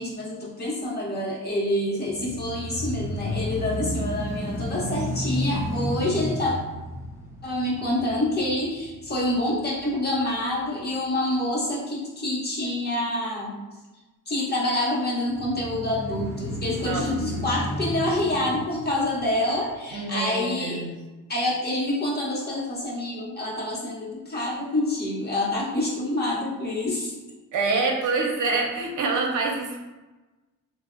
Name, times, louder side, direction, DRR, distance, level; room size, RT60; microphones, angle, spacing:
voice 1, 0.0-6.6 7.4-13.5 14.3-20.8 21.3-27.1, left 1 dB, 30° left, -5 dB, 0.8 m, -27 dB
sound 1, 2.0-10.1 10.6-10.7 15.3-19.7, equal, 10° right, 0.6 m, -32 dB
voice 2, 19.9-20.9 27.5-29.8, right 3 dB, 60° right, 0 dB, 0.6 m, -26 dB
3.6 x 2.0 x 2.4 m, 1.1 s
cardioid pair, 120°, 34 cm